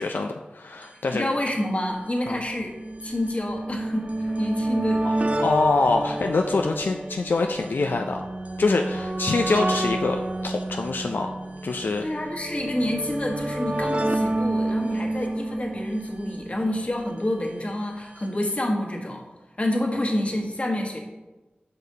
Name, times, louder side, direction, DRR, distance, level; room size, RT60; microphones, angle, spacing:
voice 1, 0.0-1.3 2.3-2.4 5.0-5.1 5.4-8.2 8.6-11.3 11.6-12.1, left 3 dB, 75° left, 4 dB, 0.4 m, -25 dB
sound 1, 0.8-0.9 1.1-1.2 2.0-17.3 18.3-18.4 18.5-18.6, right 1 dB, 40° right, 0.6 m, -29 dB
voice 2, 1.1-2.7 3.0-4.1 4.4-5.1 12.0-19.2 19.6-21.0, left 1 dB, 40° left, 1 dB, 1.3 m, -28 dB
9.5 x 5.4 x 2.8 m, 1.1 s
wide cardioid pair, 50°, 3 cm